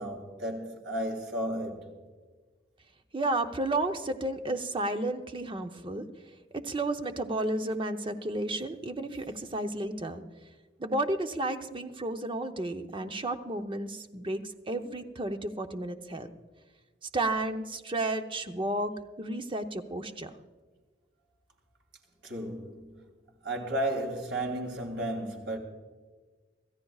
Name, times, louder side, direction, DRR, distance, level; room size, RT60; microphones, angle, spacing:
voice 1, 0.0-2.0 22.2-23.1 23.4-25.6, right 1 dB, 85° right, 3.1 m, -33 dB
voice 2, 3.1-6.1 6.6-10.2 10.8-16.3 17.1-18.9 19.2-20.4, right 2 dB, 30° right, 0.8 m, -32 dB
26.0 x 14.0 x 2.4 m
head